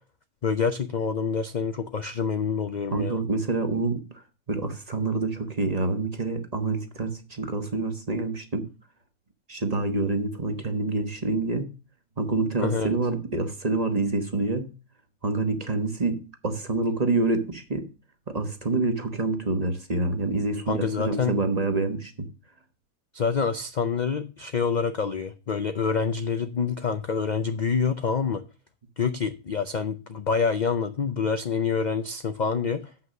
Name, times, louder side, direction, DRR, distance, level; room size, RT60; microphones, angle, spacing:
voice 1, 0.4-3.2 12.6-12.9 20.7-21.4 23.1-28.4 29.0-32.9, left 5 dB, 55° left, 0.5 m, -27 dB
voice 2, 2.9-8.7 9.5-11.7 12.2-14.7 15.2-17.9 18.3-22.3, right 3 dB, 30° right, 1.2 m, -27 dB
7.6 x 5.9 x 6.4 m
omnidirectional pair, 1.5 m